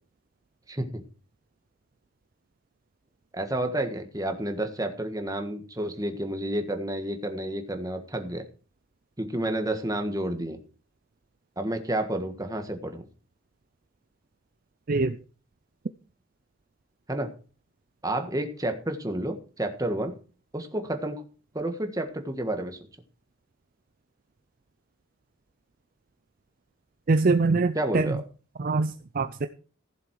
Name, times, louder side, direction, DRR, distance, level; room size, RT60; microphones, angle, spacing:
voice 1, 0.7-1.0 3.3-8.4 9.2-10.6 11.6-13.0 17.1-17.3 18.0-20.1 20.5-21.2 21.5-22.8 27.7-28.2, right 1 dB, 15° right, 6 dB, 1.5 m, -30 dB
voice 2, 27.1-28.2 28.6-29.5, right 3 dB, 40° right, 10 dB, 0.5 m, -24 dB
15.0 x 7.4 x 4.7 m, 0.38 s
head